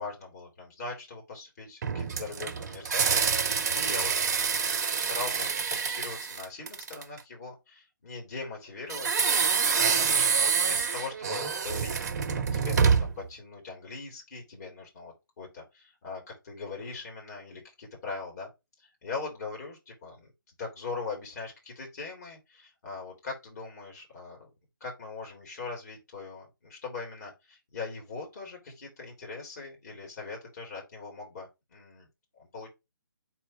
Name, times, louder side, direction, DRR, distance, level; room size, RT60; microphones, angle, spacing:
voice 1, 0.0-4.1 4.4-4.7 5.0-18.5 18.8-20.3 20.6-24.5 24.8-32.1 32.4-32.7, left 4 dB, 45° left, 0 dB, 3.3 m, -41 dB
sound 1, 1.8-7.2 8.9-13.3, right 6 dB, 45° right, 0.7 m, -27 dB
4.4 x 4.4 x 5.0 m, 0.23 s
figure-of-eight pair, 145°, 12 cm